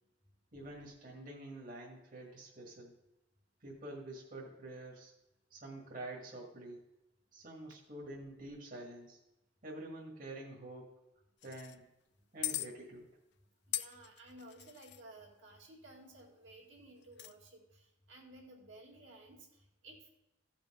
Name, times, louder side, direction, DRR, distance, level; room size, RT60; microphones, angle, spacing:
voice 1, 0.5-3.0 3.6-5.1 5.5-6.9 7.3-9.2 9.6-10.9 11.4-11.9 12.3-13.2, right 1 dB, 45° right, -1 dB, 1.6 m, -47 dB
sound 1, 11.4-11.8 12.4-12.7 13.7-15.0 17.0-17.3, left 14 dB, 60° left, 0.4 m, -39 dB
voice 2, 13.7-20.1, right 1 dB, 70° right, -1 dB, 2.0 m, -56 dB
15.0 x 5.2 x 4.9 m, 0.93 s
head